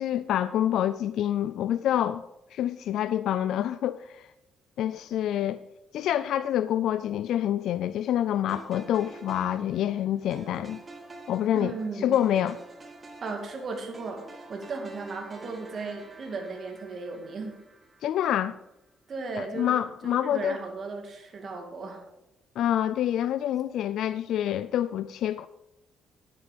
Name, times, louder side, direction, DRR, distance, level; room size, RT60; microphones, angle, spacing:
voice 1, 0.0-2.2 2.5-4.3 4.8-5.6 5.9-10.8 11.3-11.7 12.0-12.6 18.0-18.6 19.4-20.6 22.6-25.5, left 11 dB, 80° left, 0.3 m, -27 dB
sound 1, 8.5-18.7, right 3 dB, 30° right, 2.0 m, -48 dB
voice 2, 11.5-12.2 13.2-14.2 14.5-17.5 19.1-19.8 20.0-22.0, right 4 dB, 50° right, 2.3 m, -36 dB
10.0 x 8.9 x 5.1 m
cardioid pair, 90°, 0 cm